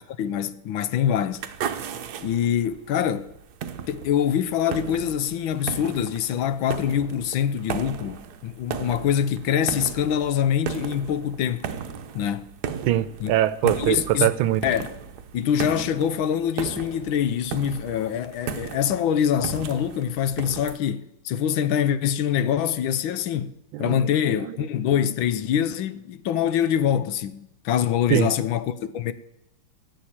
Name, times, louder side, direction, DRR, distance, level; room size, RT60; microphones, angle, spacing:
voice 1, 0.0-1.4 2.2-3.3 3.9-11.7 12.1-12.6 13.2-13.3 13.6-14.3 14.6-14.9 15.3-29.1, left 9 dB, 80° left, 1.5 m, -24 dB
sound 1, 1.3-20.8, right 7 dB, 60° right, 1.2 m, -36 dB
voice 2, 12.9-14.7 23.7-24.6 28.1-28.3, right 13 dB, 80° right, 1.4 m, -23 dB
16.0 x 6.4 x 8.7 m
omnidirectional pair, 2.2 m